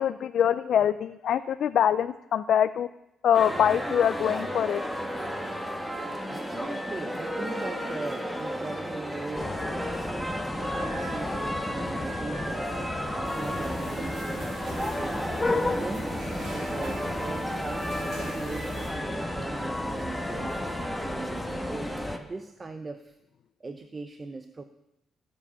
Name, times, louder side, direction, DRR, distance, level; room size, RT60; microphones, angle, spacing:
voice 1, 0.0-2.9 3.2-4.8, left 9 dB, 65° left, 12 dB, 0.4 m, -24 dB
sound 1, 3.3-22.2, equal, 10° right, 1.9 m, -33 dB
voice 2, 6.3-10.3 10.6-12.7 13.1-16.1 16.5-20.6 21.0-23.2 23.6-24.6, right 3 dB, 30° right, 7 dB, 0.8 m, -39 dB
sound 2, 9.4-22.2, left 2 dB, 20° left, 0.9 m, -35 dB
sound 3, 13.2-18.9, right 4 dB, 75° right, 4.6 m, -41 dB
20.5 x 7.6 x 5.7 m, 0.89 s
cardioid pair, 90°, 0 cm